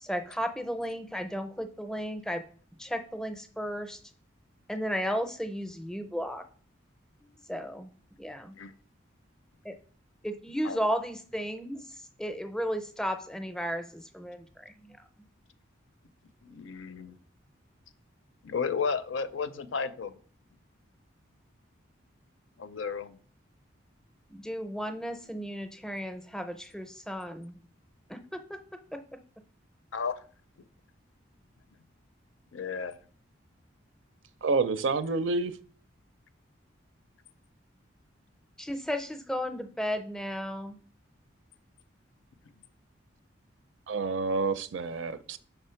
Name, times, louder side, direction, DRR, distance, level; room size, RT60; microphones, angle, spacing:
voice 1, 0.0-2.4 2.8-4.0 4.7-6.4 7.2-7.9 8.2-8.5 9.6-9.7 10.2-15.0 24.3-27.6 28.1-28.6 28.9-29.0 38.6-40.8, equal, 5° left, 0.5 m, -34 dB
voice 2, 16.4-17.2 18.4-20.1 22.6-23.2 29.9-30.2 32.5-33.0, left 5 dB, 80° left, 0.5 m, -33 dB
voice 3, 34.4-35.5 43.9-45.4, right 4 dB, 75° right, 0.5 m, -28 dB
5.6 x 3.5 x 5.6 m
head